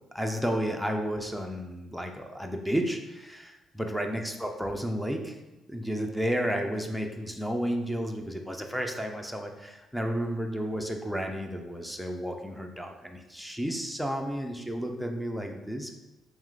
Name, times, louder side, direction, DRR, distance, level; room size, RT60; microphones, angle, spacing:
voice 1, 0.1-5.4 5.7-15.9, equal, ahead, 3 dB, 0.5 m, -32 dB
3.1 x 3.0 x 3.8 m, 1.0 s
hypercardioid pair, 45°, 0 cm